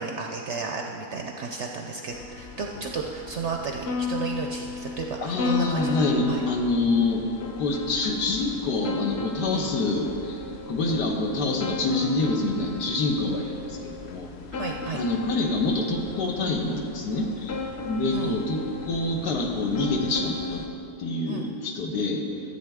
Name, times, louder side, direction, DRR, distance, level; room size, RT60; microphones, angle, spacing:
voice 1, 0.0-5.9 6.3-6.4 9.5-9.7 14.5-15.0 18.1-18.4 21.3-21.5, right 4 dB, 65° right, 2 dB, 0.7 m, -33 dB
sound 1, 2.1-20.7, left 4 dB, 60° left, 0.7 m, -35 dB
voice 2, 5.2-7.3 7.6-10.4 10.7-14.3 14.9-17.6 17.8-20.6 21.0-22.2, left 2 dB, 85° left, 1 dB, 1.6 m, -26 dB
13.0 x 8.0 x 3.6 m, 2.9 s
omnidirectional pair, 1.7 m